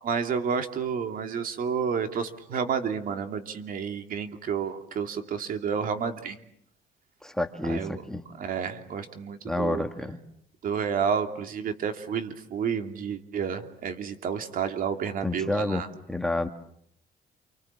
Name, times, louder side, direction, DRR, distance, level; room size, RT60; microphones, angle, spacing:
voice 1, 0.0-6.4 7.7-8.0 8.4-9.8 10.6-15.9, right 7 dB, 55° right, 7 dB, 2.7 m, -30 dB
voice 2, 7.2-8.2 9.4-10.2 15.2-16.5, left 1 dB, 5° left, 6 dB, 1.8 m, -29 dB
29.0 x 25.0 x 7.4 m, 0.70 s
cardioid pair, 110°, 17 cm